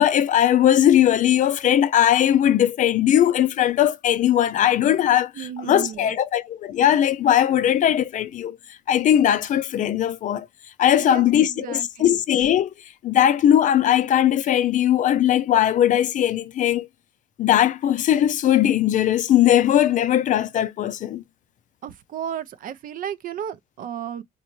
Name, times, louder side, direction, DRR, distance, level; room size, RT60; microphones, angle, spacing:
voice 1, 0.0-8.6 8.9-10.5 10.8-12.7 13.0-16.9 17.4-21.2, left 11 dB, 50° left, 0.4 m, -19 dB
voice 2, 5.3-6.2 11.0-12.2 21.8-24.2, right 9 dB, 55° right, 0.5 m, -34 dB
3.9 x 2.1 x 2.9 m
cardioid pair, 110°, 17 cm